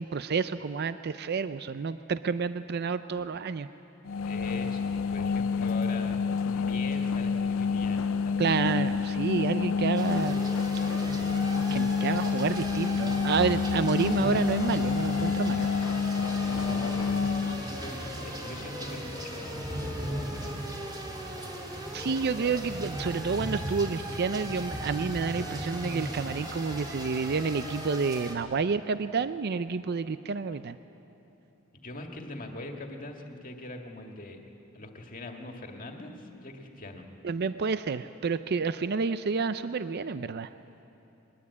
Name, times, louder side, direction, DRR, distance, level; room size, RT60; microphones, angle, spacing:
voice 1, 0.0-3.7 8.4-10.4 11.7-15.7 21.9-30.8 37.2-40.5, right 5 dB, 50° right, 12 dB, 0.5 m, -29 dB
Engine of concrete mixer, 4.1-17.6, left 5 dB, 70° left, 0.4 m, -28 dB
voice 2, 4.2-8.6 16.5-20.6 31.8-34.4 34.7-37.1, left 2 dB, 40° left, 3 dB, 2.0 m, -42 dB
sound 1, 10.0-28.3, right 1 dB, 20° right, 2.8 m, -37 dB
21.5 x 21.0 x 8.4 m, 2.9 s
head